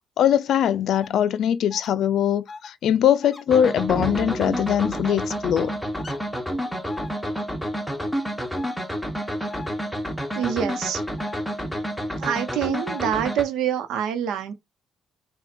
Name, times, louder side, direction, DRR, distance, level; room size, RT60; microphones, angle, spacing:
voice 1, 0.2-5.7, left 9 dB, 75° left, 0.4 m, -21 dB
sound 1, 0.9-1.1 1.7-1.9 2.5-2.7 3.2-3.4 4.8-5.0 6.0-6.2 6.9-7.1 8.5-8.7 9.5-9.7 10.3-10.5 11.2-11.4 12.2-12.4 12.9-13.0, left 4 dB, 35° left, 0.7 m, -39 dB
sound 2, 3.5-13.4, equal, ahead, 0.9 m, -29 dB
sound 3, 3.9-6.3, right 3 dB, 25° right, 1.7 m, -35 dB
voice 2, 10.3-11.0 12.2-14.5, right 9 dB, 85° right, 0.8 m, -26 dB
4.2 x 2.3 x 2.5 m
cardioid pair, 90°, 0 cm